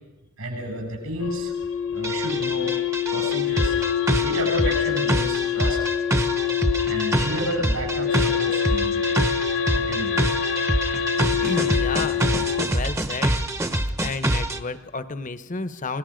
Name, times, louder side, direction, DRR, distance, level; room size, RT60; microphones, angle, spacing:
voice 1, 0.4-1.5 1.9-2.7 3.1-3.8 4.1-5.8 6.9-9.1 9.7-10.1, equal, 85° right, 2 dB, 7.9 m, -31 dB
sound 1, 1.2-12.7, left 9 dB, 80° left, 1.5 m, -25 dB
sound 2, 2.0-14.6, right 1 dB, 15° right, 0.9 m, -25 dB
voice 2, 11.4-12.3 12.7-13.4 14.0-16.0, left 3 dB, 40° left, 12 dB, 0.9 m, -31 dB
29.0 x 18.0 x 5.2 m, 1.1 s
head